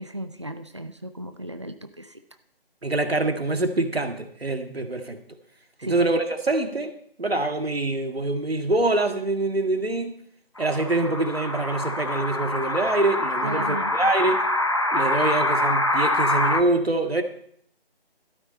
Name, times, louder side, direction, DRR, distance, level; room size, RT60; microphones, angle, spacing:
voice 1, 0.0-2.2 5.8-6.1 13.4-13.9, right 1 dB, 30° right, 0.5 m, -35 dB
voice 2, 2.8-5.2 5.8-6.9 7.2-10.2 10.6-14.4 14.9-17.2, right 2 dB, 80° right, 1.9 m, -25 dB
sound 1, 10.6-16.6, left 1 dB, 30° left, 0.8 m, -25 dB
13.0 x 11.5 x 4.4 m
figure-of-eight pair, 165°, 30 cm